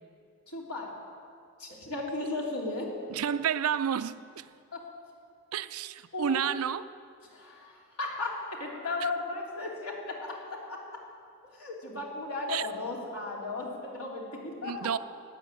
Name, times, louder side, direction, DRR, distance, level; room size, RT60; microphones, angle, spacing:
voice 1, 0.5-0.9 1.6-2.9 4.7-4.8 6.1-6.5 7.3-10.8 11.5-14.8, left 2 dB, 90° left, 3.1 m, -35 dB
voice 2, 3.1-4.5 5.5-6.9 12.5-12.6 14.6-15.0, right 8 dB, 85° right, 0.5 m, -30 dB
12.5 x 9.5 x 9.0 m
head